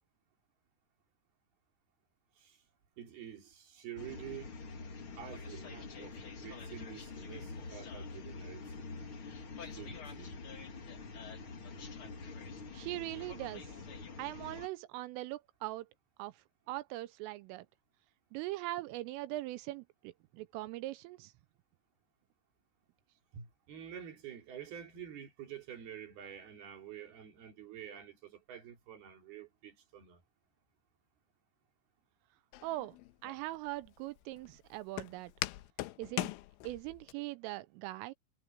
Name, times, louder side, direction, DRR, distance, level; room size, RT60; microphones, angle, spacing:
voice 1, 3.0-4.5 5.2-6.2 6.4-9.1 9.8-10.4 23.3-30.2, right 9 dB, 50° right, 4.8 m, -48 dB
sound 1, 4.0-14.7, left 4 dB, 50° left, 1.6 m, -46 dB
voice 2, 12.7-13.8 14.2-15.9 16.2-17.7 18.3-21.3 32.6-33.0 33.2-35.3 36.0-36.3 36.6-38.1, right 17 dB, 85° right, 3.1 m, -41 dB
Walk footsteps, 32.5-37.1, left 16 dB, 80° left, 3.0 m, -43 dB
omnidirectional pair, 6.0 m